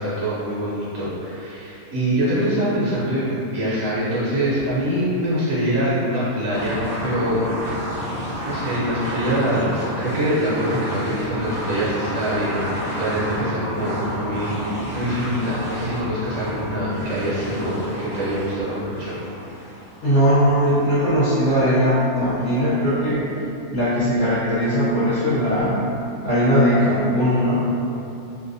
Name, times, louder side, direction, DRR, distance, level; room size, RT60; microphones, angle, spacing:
voice 1, 0.0-7.4 8.1-19.2, equal, 70° right, -8 dB, 1.0 m, -24 dB
sound 1, 6.5-20.2, equal, 40° right, 0.5 m, -30 dB
voice 2, 20.0-23.3 23.7-25.8 26.2-27.7, equal, 65° left, -13 dB, 1.0 m, -19 dB
2.6 x 2.1 x 2.5 m, 2.8 s
omnidirectional pair, 1.5 m